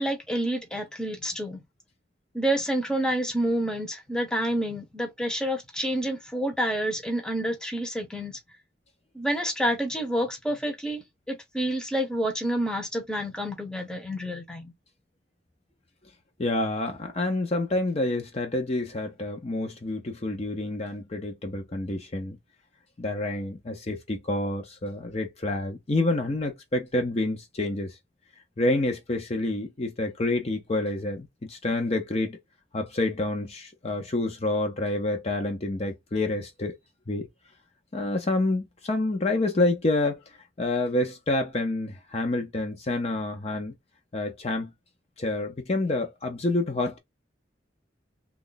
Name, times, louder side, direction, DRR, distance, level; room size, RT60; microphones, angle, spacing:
voice 1, 0.0-1.6 2.3-8.4 9.1-14.7, right 1 dB, 5° left, 0.7 m, -28 dB
voice 2, 16.4-22.4 23.0-27.9 28.6-32.4 32.7-36.7 37.1-37.3 37.9-40.2 40.6-43.7 44.1-44.7 45.2-47.0, left 2 dB, 35° left, 0.6 m, -28 dB
3.0 x 2.3 x 3.9 m
head